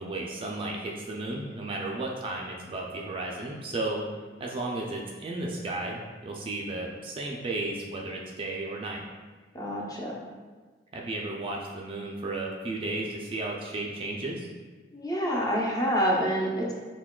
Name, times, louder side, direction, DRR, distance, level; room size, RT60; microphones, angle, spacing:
voice 1, 0.0-4.0 4.4-9.0 10.9-14.5, right 2 dB, 30° right, -2 dB, 0.3 m, -34 dB
voice 2, 9.5-10.1 14.9-16.7, equal, 20° left, -3 dB, 0.5 m, -27 dB
5.8 x 2.2 x 2.2 m, 1.4 s
head